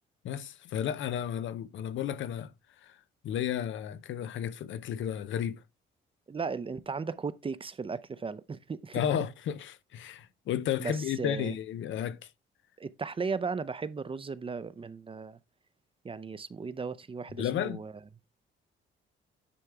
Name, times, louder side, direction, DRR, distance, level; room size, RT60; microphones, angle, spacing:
voice 1, 0.2-2.5 3.2-5.6 8.9-12.2 17.4-17.8, left 9 dB, 75° left, 0.8 m, -32 dB
voice 2, 6.3-9.0 10.8-11.5 12.8-15.4 16.0-18.1, right 5 dB, 25° right, 0.6 m, -36 dB
10.0 x 3.5 x 4.6 m
cardioid pair, 90°, 20 cm